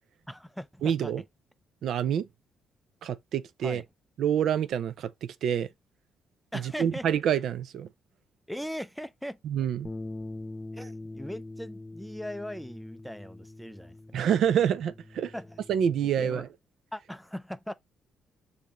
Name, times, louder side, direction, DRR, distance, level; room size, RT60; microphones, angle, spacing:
voice 1, 0.3-1.1 3.6-3.8 6.5-7.1 8.5-9.4 10.7-14.2 15.3-15.6 16.2-16.5 16.9-17.7, equal, ahead, 0.4 m, -39 dB
voice 2, 0.8-1.2 1.8-2.3 3.0-3.8 4.2-5.1 5.4-5.7 6.5-7.9 9.4-9.9 14.1-15.3 15.7-16.5, right 9 dB, 70° right, 0.4 m, -27 dB
sound 1, 9.8-16.1, left 2 dB, 20° left, 0.9 m, -43 dB
6.6 x 2.7 x 3.0 m
cardioid pair, 90°, 0 cm